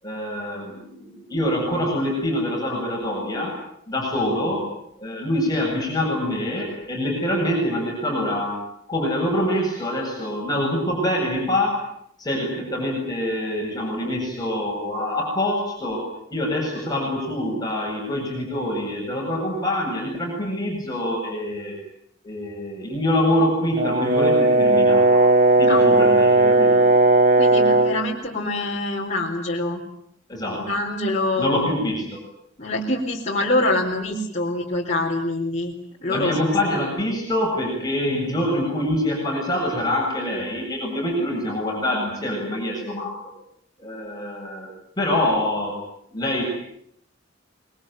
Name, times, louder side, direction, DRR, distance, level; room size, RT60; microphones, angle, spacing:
voice 1, 0.0-3.6 3.9-4.7 5.0-8.6 8.9-11.8 12.2-21.8 22.2-25.3 25.6-26.9 30.3-30.7 31.4-32.2 36.1-43.1 43.8-45.8 46.1-46.4, left 1 dB, 20° left, -1 dB, 7.8 m, -25 dB
Brass instrument, 23.8-28.0, right 2 dB, 40° right, 1.5 m, -16 dB
voice 2, 27.4-29.8 30.5-31.7 32.6-35.7 36.0-36.5, left 2 dB, 35° left, -3 dB, 4.0 m, -25 dB
26.0 x 22.5 x 9.2 m, 0.71 s
head